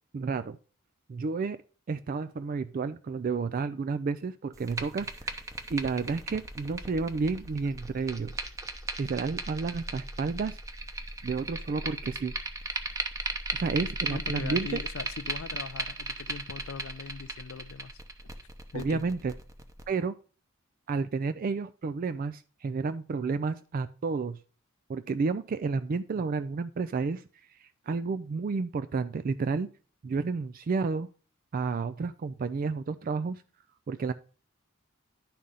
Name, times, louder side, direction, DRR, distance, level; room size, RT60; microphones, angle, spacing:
voice 1, 0.1-0.6 1.1-1.6 1.9-5.4 5.7-8.4 9.0-10.6 11.2-12.3 13.5-14.8 18.7-19.3 19.9-20.1 20.9-24.4 24.9-27.2 27.6-29.7 30.0-31.1 31.5-33.4 33.9-34.1, right 4 dB, 45° right, 0.3 m, -31 dB
sound 1, 4.5-19.8, right 2 dB, 15° right, 0.8 m, -37 dB
voice 2, 14.1-18.0 18.7-19.0, left 5 dB, 85° left, 0.5 m, -40 dB
11.0 x 3.8 x 5.5 m
head